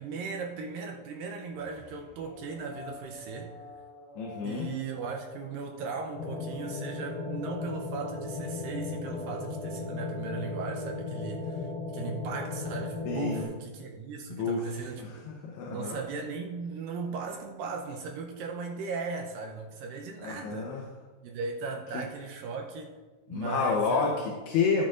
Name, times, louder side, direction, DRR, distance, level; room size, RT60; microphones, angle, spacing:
voice 1, 0.0-3.5 4.4-15.2 15.7-20.8 21.2-22.9 23.3-24.3, right 4 dB, 80° right, 2 dB, 2.0 m, -37 dB
sound 1, 1.5-7.1, left 2 dB, 25° left, 1.2 m, -50 dB
voice 2, 4.2-4.7 13.1-13.5 14.3-14.6 15.0-16.0 20.2-20.8 21.9-22.0 23.3-24.9, left 5 dB, 80° left, 0 dB, 2.8 m, -29 dB
sound 2, 6.1-13.4, left 3 dB, 60° left, 2.8 m, -36 dB
13.0 x 8.4 x 2.5 m, 1.3 s
omnidirectional pair, 4.9 m